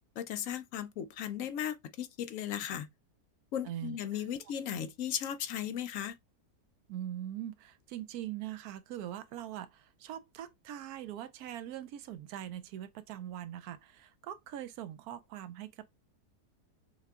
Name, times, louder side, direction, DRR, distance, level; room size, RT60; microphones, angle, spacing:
voice 1, 0.2-2.9 3.5-6.1, left 9 dB, 65° left, 0.9 m, -36 dB
voice 2, 3.6-4.2 6.9-15.8, right 11 dB, 70° right, 1.0 m, -42 dB
6.5 x 2.2 x 3.5 m
omnidirectional pair, 1.7 m